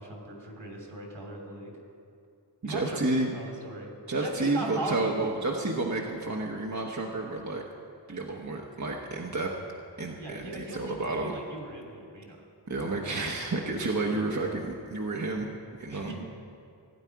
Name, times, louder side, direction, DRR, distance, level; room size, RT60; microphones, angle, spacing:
voice 1, 0.0-1.7 2.6-3.0 3.3-3.9 4.2-5.2 10.2-10.9 11.2-12.4 15.9-16.1, right 2 dB, 70° right, -1 dB, 2.7 m, -38 dB
voice 2, 2.6-3.4 4.1-7.6 8.1-9.5 10.0-11.3 12.7-15.5 15.8-16.1, right 2 dB, 40° right, -1 dB, 1.0 m, -30 dB
16.5 x 9.0 x 4.6 m, 2.5 s
wide cardioid pair, 50°, 45 cm